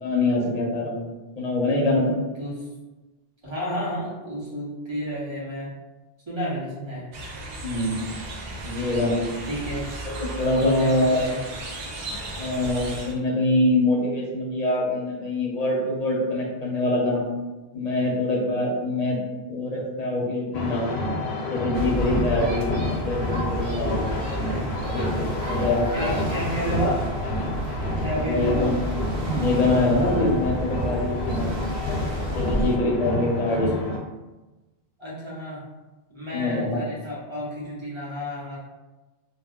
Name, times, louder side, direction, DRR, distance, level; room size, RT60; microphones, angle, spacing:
voice 1, 0.0-1.0 1.4-2.1 7.6-8.0 8.6-9.2 10.1-11.3 12.4-17.3 17.7-19.2 19.5-20.8 21.5-22.7 23.0-24.1 24.5-25.9 28.2-28.7 29.2-31.5 32.3-33.7 36.3-36.8, left 2 dB, 45° left, -3 dB, 0.7 m, -24 dB
voice 2, 3.4-5.7 6.3-7.1 9.5-9.9 10.6-11.4 25.9-27.0 28.0-28.7 33.5-33.7 35.0-35.6 36.1-38.6, equal, 30° right, -7 dB, 0.9 m, -30 dB
sound 1, 7.1-13.1, right 2 dB, 55° right, 0.5 m, -35 dB
sound 2, 20.5-34.0, left 2 dB, 85° left, 0.8 m, -29 dB
sound 3, 21.7-32.8, right 1 dB, 85° right, 0.8 m, -31 dB
2.2 x 2.2 x 3.5 m, 1.1 s
omnidirectional pair, 1.0 m